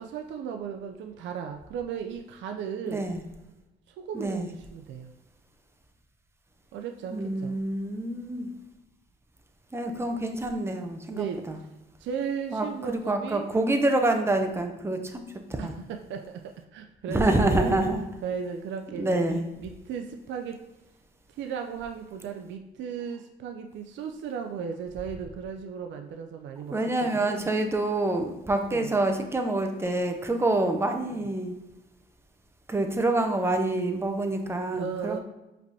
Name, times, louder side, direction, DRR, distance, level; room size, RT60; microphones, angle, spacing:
voice 1, 0.0-3.1 4.0-5.1 6.7-7.6 11.1-11.4 12.0-13.5 15.6-17.8 18.2-20.6 21.3-26.8 27.0-27.5 28.7-28.9 31.1-31.2 34.7-35.2, right 7 dB, 70° right, 4 dB, 0.4 m, -36 dB
voice 2, 2.9-3.2 4.1-4.5 7.1-8.5 9.7-11.6 12.5-15.7 17.1-18.0 19.0-19.5 26.7-31.5 32.7-35.2, right 2 dB, 10° right, 5 dB, 0.6 m, -27 dB
5.0 x 3.3 x 2.7 m, 0.98 s
cardioid pair, 90°, 20 cm